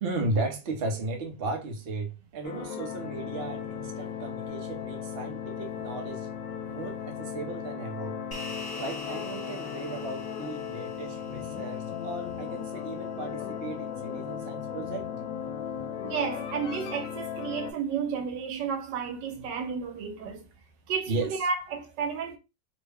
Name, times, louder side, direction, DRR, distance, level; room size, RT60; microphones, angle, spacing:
voice 1, 0.0-6.3 6.7-8.2 8.8-15.1 21.1-21.4, right 2 dB, 50° right, 0.7 m, -35 dB
sound 1, 2.4-17.7, left 8 dB, 80° left, 1.2 m, -36 dB
sound 2, 8.3-13.0, left 2 dB, 25° left, 0.5 m, -44 dB
voice 2, 16.0-20.5 20.9-22.4, right 6 dB, 80° right, 1.3 m, -32 dB
3.2 x 2.1 x 3.4 m
omnidirectional pair, 1.9 m